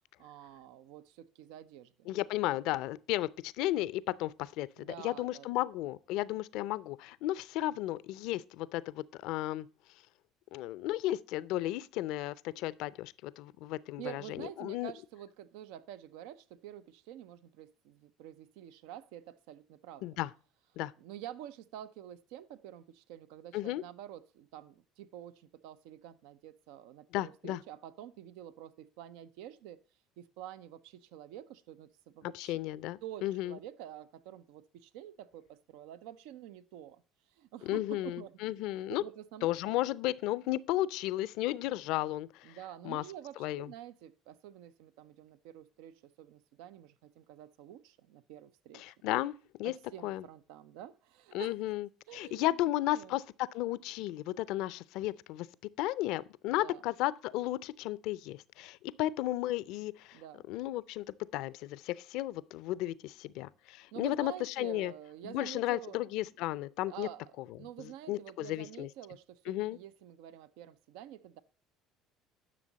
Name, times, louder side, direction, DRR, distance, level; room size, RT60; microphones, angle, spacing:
voice 1, 0.2-2.1 4.8-5.5 14.0-20.2 21.0-29.8 30.2-32.6 33.0-37.0 37.3-39.7 42.4-48.8 49.6-51.6 52.1-52.5 52.9-53.2 56.4-56.8 60.1-60.5 63.9-66.1 66.8-71.4, right 11 dB, 80° right, 0.6 m, -48 dB
voice 2, 2.1-9.7 10.5-14.9 20.0-20.3 20.8-20.9 23.5-23.8 27.1-27.6 32.2-33.6 37.7-39.0 39.4-42.6 42.8-43.0 43.4-43.7 48.7-49.7 50.0-50.2 51.3-51.9 52.1-55.5 55.8-60.2 60.5-61.0 61.3-64.9 65.2-67.1 67.8-68.9 69.5-69.8, left 15 dB, 75° left, 0.5 m, -34 dB
11.0 x 6.3 x 4.0 m
supercardioid pair, 90°, 0 cm